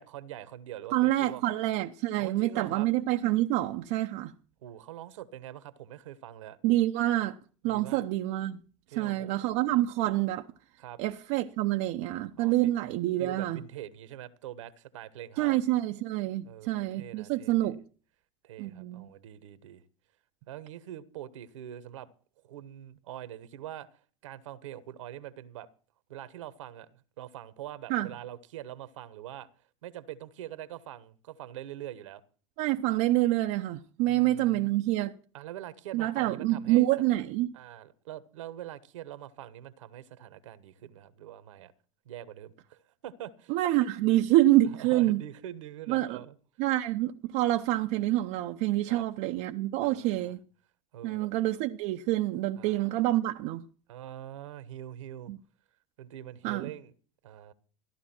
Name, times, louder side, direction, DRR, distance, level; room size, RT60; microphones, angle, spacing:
voice 1, 0.0-1.5 2.2-2.9 4.6-6.6 7.6-8.0 8.9-9.8 10.8-11.0 12.4-12.7 13.2-15.6 16.4-17.8 18.4-19.8 20.5-22.1 22.4-23.9 24.2-25.7 26.1-29.5 29.8-32.2 34.1-34.7 35.3-36.9 37.5-41.7 42.0-43.6 44.7-46.4 48.9-49.0 49.8-50.3 50.9-51.3 52.6-52.9 53.9-55.3 56.0-56.9 57.2-57.5, right 12 dB, 75° right, 1.3 m, -44 dB
voice 2, 0.9-4.3 6.6-7.4 7.6-8.6 9.0-10.5 11.0-13.6 15.4-17.8 18.6-19.1 27.9-28.1 32.6-35.1 35.9-37.5 43.5-45.2 45.9-46.2 46.6-50.4 51.0-53.6 55.3-55.4 56.4-56.7, right 15 dB, 55° right, 0.8 m, -27 dB
14.5 x 11.5 x 4.4 m
hypercardioid pair, 90°, 16 cm